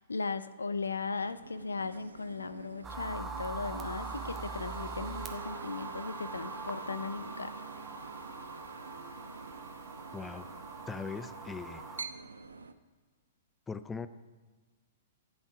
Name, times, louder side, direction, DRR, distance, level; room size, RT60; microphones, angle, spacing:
voice 1, 0.0-7.5, left 4 dB, 85° left, 14 dB, 0.4 m, -37 dB
sound 1, 1.1-12.7, right 4 dB, 85° right, 0.6 m, -47 dB
sound 2, 2.8-12.0, right 3 dB, 20° right, 1.0 m, -43 dB
voice 2, 10.1-10.5 10.9-11.8 13.7-14.1, left 5 dB, 15° left, 13 dB, 0.5 m, -40 dB
11.5 x 8.0 x 4.7 m, 1.4 s
figure-of-eight pair, 110°, 0 cm